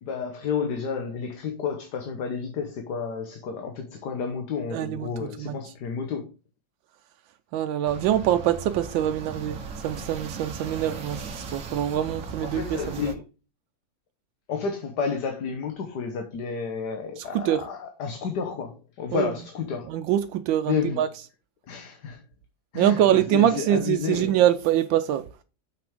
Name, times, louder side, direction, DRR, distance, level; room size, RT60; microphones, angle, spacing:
voice 1, 0.0-6.2 12.4-13.2 14.5-19.9 20.7-21.0 21.7-22.2 22.7-24.3, left 6 dB, 65° left, 1.6 m, -31 dB
voice 2, 4.7-5.1 5.4-5.6 7.5-9.6 9.8-11.2 11.5-13.0 17.2-17.6 19.1-19.3 19.9-21.1 22.7-25.2, right 11 dB, 85° right, 1.3 m, -24 dB
sound 1, 7.9-13.1, right 4 dB, 50° right, 1.3 m, -38 dB
6.8 x 6.0 x 3.5 m
omnidirectional pair, 2.0 m